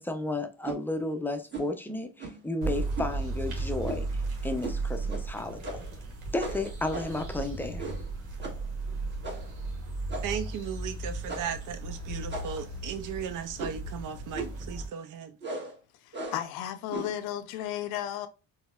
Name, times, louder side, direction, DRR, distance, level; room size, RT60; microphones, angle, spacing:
voice 1, 0.0-5.8 6.3-7.9, left 2 dB, 5° left, 0.5 m, -33 dB
sound 1, 0.6-0.8 1.5-1.8 2.2-2.5 3.0-3.1 3.8-4.1 4.6-4.8 5.1-5.2 5.6-6.0 6.4-7.3 7.8-8.1 8.4-8.7 9.2-9.5 10.1-10.5 11.3-11.6 12.3-12.7 13.6-13.9 14.3-14.6 15.4-15.7 16.1-16.5 16.9-17.2, right 3 dB, 30° right, 1.4 m, -38 dB
sound 2, 2.6-14.9, right 2 dB, 75° right, 1.1 m, -35 dB
voice 2, 10.2-15.4, right 8 dB, 55° right, 0.6 m, -36 dB
voice 3, 16.0-18.3, left 12 dB, 70° left, 0.6 m, -34 dB
3.9 x 2.2 x 2.3 m
hypercardioid pair, 60°, 39 cm